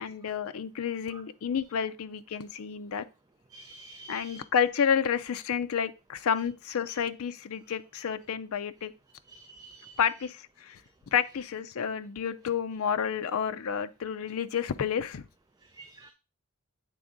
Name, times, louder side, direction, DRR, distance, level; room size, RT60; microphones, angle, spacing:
voice 1, 0.0-3.0 4.1-8.9 10.0-10.8 11.1-15.2, left 7 dB, 75° left, 0.4 m, -30 dB
voice 2, 3.5-4.4 9.3-10.0 15.7-16.1, right 2 dB, 15° right, 0.3 m, -48 dB
8.4 x 3.5 x 3.8 m
head